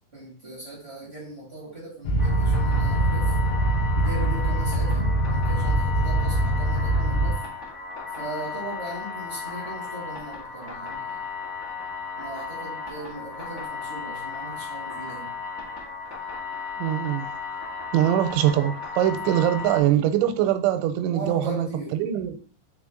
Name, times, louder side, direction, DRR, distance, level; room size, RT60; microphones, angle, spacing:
voice 1, 0.1-3.3 3.9-7.4 8.1-11.2 12.1-15.3 21.1-22.0, right 1 dB, 50° right, 0.7 m, -38 dB
sound 1, 2.0-7.3, right 1 dB, 85° left, 3.1 m, -23 dB
sound 2, 2.2-19.8, left 5 dB, 40° left, 1.0 m, -35 dB
voice 2, 16.8-17.3 17.9-22.4, right 11 dB, 90° right, 3.0 m, -23 dB
6.5 x 3.9 x 3.7 m
omnidirectional pair, 5.2 m